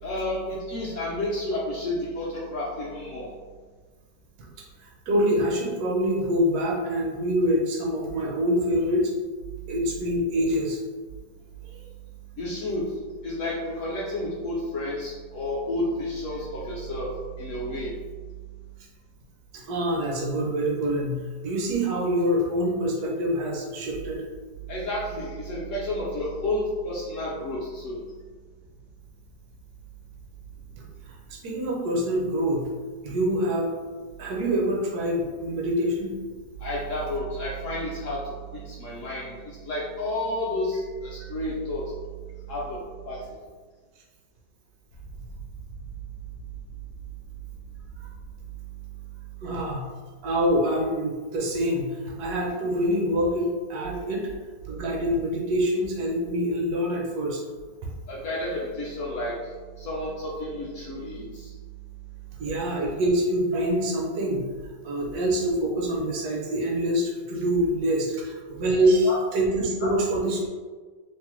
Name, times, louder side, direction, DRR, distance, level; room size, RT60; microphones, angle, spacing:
voice 1, 0.0-3.3 12.4-12.9 13.2-17.1 17.4-17.9 24.7-28.0 36.6-41.9 42.5-42.8 43.0-43.2 58.1-59.3 59.8-61.5 69.0-69.2 69.8-69.9, left 1 dB, 70° left, -5 dB, 0.8 m, -31 dB
voice 2, 4.8-9.1 9.7-10.8 19.5-24.2 31.0-32.7 33.0-33.7 34.2-36.1 48.0-48.1 49.4-49.9 50.2-54.3 54.6-57.4 62.4-64.5 64.8-70.5, equal, 75° right, -1 dB, 1.1 m, -25 dB
2.9 x 2.0 x 3.0 m, 1.4 s
omnidirectional pair, 1.7 m